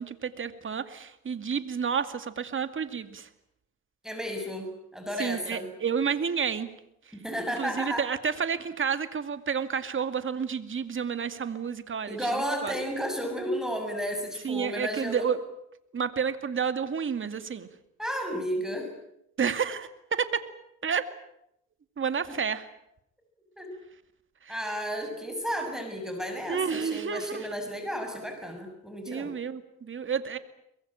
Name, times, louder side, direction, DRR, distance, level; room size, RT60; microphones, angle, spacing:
voice 1, 0.0-3.3 5.2-6.7 7.6-12.7 14.4-15.4 15.9-17.7 19.4-20.4 20.8-21.0 22.0-22.7 24.4-24.6 26.5-27.5 29.1-30.4, right 6 dB, 40° right, 11 dB, 2.3 m, -30 dB
voice 2, 4.0-5.7 7.1-8.1 12.1-15.3 18.0-18.9 22.3-22.4 23.6-23.7 24.5-29.3, equal, ahead, 4 dB, 6.7 m, -33 dB
23.5 x 22.5 x 8.9 m, 0.78 s
cardioid pair, 90°, 30 cm